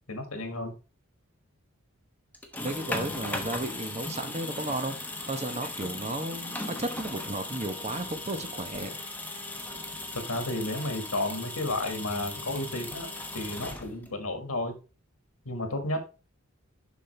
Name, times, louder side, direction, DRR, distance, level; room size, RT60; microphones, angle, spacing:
voice 1, 0.1-0.7 10.1-13.1 13.3-14.8 15.5-16.1, left 2 dB, 90° left, 1.8 m, -32 dB
sound 1, 2.3-14.3, left 2 dB, 10° left, 1.0 m, -38 dB
voice 2, 2.6-5.0 5.3-9.0, right 2 dB, 30° right, 0.9 m, -34 dB
7.3 x 5.7 x 3.3 m
head